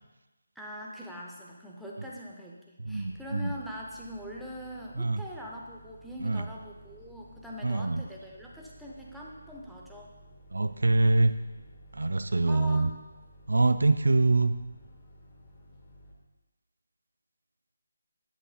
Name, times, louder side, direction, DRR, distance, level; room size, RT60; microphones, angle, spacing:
voice 1, 0.5-10.1 12.4-12.9, equal, ahead, -5 dB, 0.8 m, -43 dB
sound 1, 2.8-16.1, right 1 dB, 20° left, 1.4 m, -54 dB
voice 2, 2.8-3.5 5.0-5.2 6.2-6.5 7.6-8.0 10.5-11.3 11.9-12.9 13.5-14.5, right 2 dB, 65° right, 10 dB, 0.4 m, -24 dB
11.0 x 8.2 x 2.2 m, 1.1 s
figure-of-eight pair, 155°, 0 cm